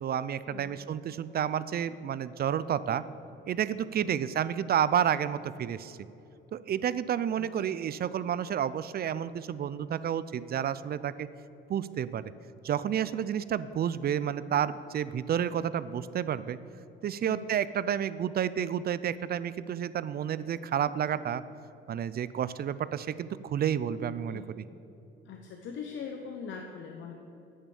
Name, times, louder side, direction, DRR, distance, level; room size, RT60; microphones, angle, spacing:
voice 1, 0.0-3.0 3.5-6.0 6.5-11.3 11.7-12.3 12.6-16.6 17.0-21.4 21.9-24.6, right 9 dB, 50° right, 16 dB, 0.4 m, -30 dB
voice 2, 7.3-7.8 17.2-17.5 24.3-24.5 25.2-27.1, left 6 dB, 70° left, 3 dB, 1.0 m, -42 dB
8.8 x 8.7 x 7.1 m, 2.8 s
cardioid pair, 90°, 20 cm